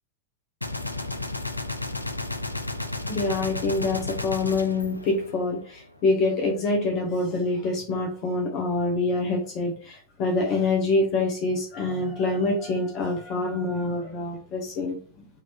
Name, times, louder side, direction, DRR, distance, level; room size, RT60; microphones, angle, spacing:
Gunshot gunfire, 0.6-5.8, left 2 dB, 85° left, 0.4 m, -33 dB
voice 1, 3.1-15.0, left 2 dB, 35° left, 0 dB, 1.0 m, -26 dB
3.8 x 2.9 x 4.4 m, 0.43 s
figure-of-eight pair, 90°, 0 cm